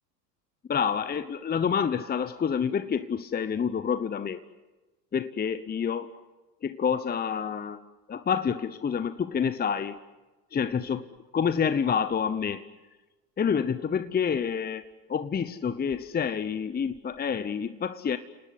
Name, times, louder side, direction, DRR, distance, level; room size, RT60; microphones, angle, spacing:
voice 1, 0.7-4.4 5.1-6.2 6.6-10.0 10.5-12.7 13.4-18.2, left 7 dB, 20° left, 12 dB, 0.9 m, -28 dB
29.5 x 19.0 x 9.7 m, 1.2 s
hypercardioid pair, 80°, 49 cm